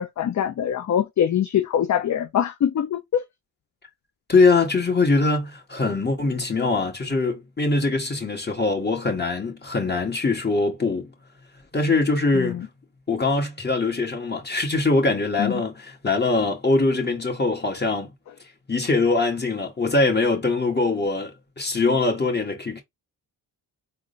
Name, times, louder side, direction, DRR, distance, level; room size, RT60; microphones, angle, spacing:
voice 1, 0.0-3.2 12.3-12.7 15.4-15.5, left 9 dB, 40° left, 0.5 m, -23 dB
voice 2, 4.3-11.1 11.7-12.7 13.1-18.1 18.7-21.3 21.6-22.8, left 3 dB, 20° left, 1.6 m, -22 dB
3.7 x 2.1 x 3.8 m
cardioid pair, 60°, 46 cm